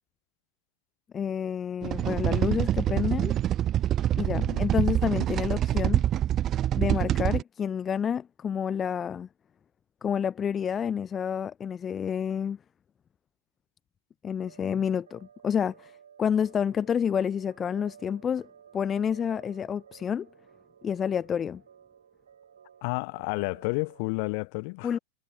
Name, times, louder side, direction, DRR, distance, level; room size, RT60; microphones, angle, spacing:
voice 1, 1.1-3.3 4.2-6.1 6.8-9.3 10.0-12.6 14.2-15.9 16.2-18.5 18.7-20.3 20.8-21.6 24.8-25.0, left 8 dB, 20° left, 0.7 m, -29 dB
sound 1, 1.8-7.4, right 11 dB, 30° right, 0.4 m, -26 dB
voice 2, 4.3-4.7 22.8-25.0, left 32 dB, 45° left, 1.2 m, -31 dB
sound 2, 14.5-24.1, right 8 dB, 65° right, 7.8 m, -55 dB
figure-of-eight pair, 90°, 0 cm